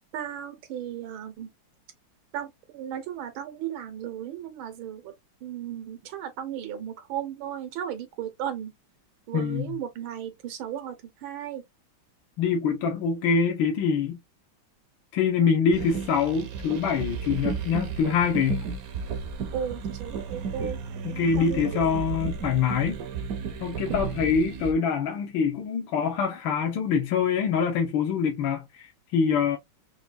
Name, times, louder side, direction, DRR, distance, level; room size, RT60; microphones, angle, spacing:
voice 1, 0.1-1.5 2.3-5.1 5.4-8.7 9.3-11.6 19.5-21.9, right 10 dB, 85° right, 1.7 m, -35 dB
voice 2, 9.3-9.8 12.4-14.2 15.1-18.7 21.0-23.0 23.6-29.6, left 6 dB, 80° left, 1.5 m, -25 dB
sound 1, 15.7-24.7, right 6 dB, 65° right, 0.9 m, -33 dB
4.7 x 2.2 x 2.5 m
omnidirectional pair, 2.1 m